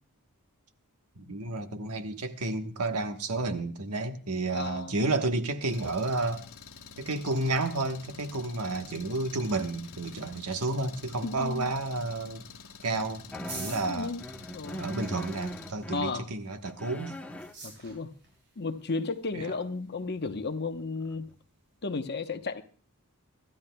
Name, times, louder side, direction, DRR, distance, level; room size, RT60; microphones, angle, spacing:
voice 1, 1.1-6.4 7.0-12.5 12.8-13.2 13.5-14.1 14.8-17.2 19.3-19.5, right 2 dB, 85° right, 1.2 m, -31 dB
voice 2, 4.5-5.0 11.2-11.7 13.9-14.2 14.5-14.8 15.9-16.3 17.6-18.1 18.6-21.3 21.8-22.6, left 4 dB, 50° left, 1.0 m, -34 dB
Engine, 5.7-15.7, left 6 dB, 70° left, 1.7 m, -48 dB
sound 1, 9.4-21.9, right 3 dB, 55° right, 7.8 m, -52 dB
sound 2, 13.3-16.0 16.5-17.5 20.4-20.5 21.1-21.3, equal, 5° left, 0.9 m, -40 dB
25.5 x 13.0 x 2.3 m
head